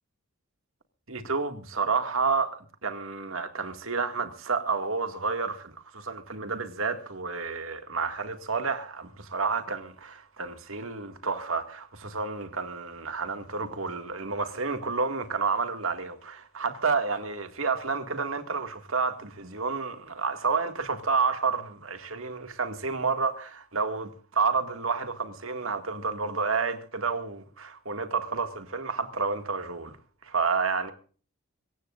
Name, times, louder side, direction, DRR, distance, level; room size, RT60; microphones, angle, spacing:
voice 1, 1.1-2.6 2.8-29.9 30.2-30.9, right 4 dB, 70° right, 2.1 m, -30 dB
25.5 x 15.0 x 2.6 m
head